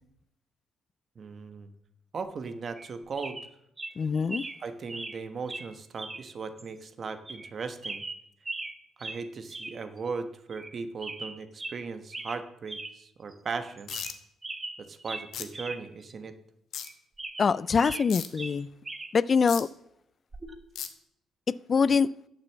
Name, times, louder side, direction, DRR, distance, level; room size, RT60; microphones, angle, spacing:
voice 1, 1.1-1.7 2.1-3.5 4.6-8.0 9.0-13.9 14.8-16.3, right 4 dB, 50° right, 1.1 m, -38 dB
sound 1, 2.7-2.9 3.2-3.5 3.8-3.9 4.3-4.6 4.9-5.2 5.5-5.7 6.0-6.2 6.6-6.7 7.3-7.5 7.8-8.7 9.0-9.2 9.5-9.8 10.1-10.2 10.5-10.7 11.0-11.8 12.1-12.4 12.7-12.9 13.3-13.4 13.8-14.2 14.4-15.8 16.1-16.2 16.7-18.1 18.4-19.1 20.3-20.5, right 2 dB, 25° right, 1.2 m, -39 dB
voice 2, 4.0-4.5 17.4-18.7 19.1-19.7 21.7-22.1, left 5 dB, 40° left, 0.3 m, -24 dB
sound 2, 13.9-14.1 15.3-15.4 16.7-16.9 18.1-18.3 19.5-19.6 20.7-20.9, left 8 dB, 70° left, 1.1 m, -35 dB
8.9 x 6.9 x 7.1 m
cardioid pair, 90°, 0 cm